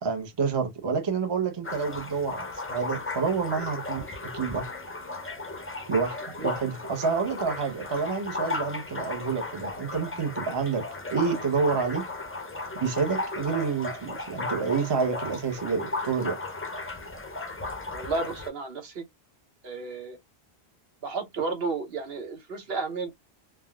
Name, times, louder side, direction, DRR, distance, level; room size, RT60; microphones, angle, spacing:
voice 1, 0.0-4.7 5.9-12.1 12.8-16.4, right 5 dB, 30° right, 0.6 m, -28 dB
sound 1, 1.6-18.5, left 2 dB, 20° left, 0.4 m, -35 dB
voice 2, 17.9-19.0 19.6-20.2 21.0-23.1, right 4 dB, 70° right, 1.1 m, -32 dB
3.4 x 2.2 x 2.2 m
omnidirectional pair, 1.1 m